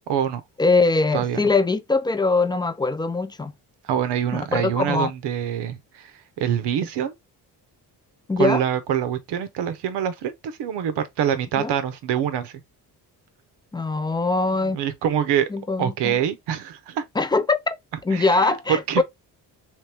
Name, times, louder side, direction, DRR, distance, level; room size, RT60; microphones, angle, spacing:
voice 1, 0.1-0.4 1.1-1.4 3.8-6.1 6.4-7.1 8.4-12.5 14.7-15.5 15.8-17.0 18.1-18.5 18.9-19.0, right 9 dB, 80° right, 0.9 m, -25 dB
voice 2, 0.6-3.5 4.3-5.1 8.3-8.6 11.6-11.7 13.7-14.8 15.5-16.1 17.2-17.8 18.0-19.0, left 3 dB, 10° left, 0.4 m, -22 dB
3.3 x 3.0 x 3.3 m
cardioid pair, 95°, 41 cm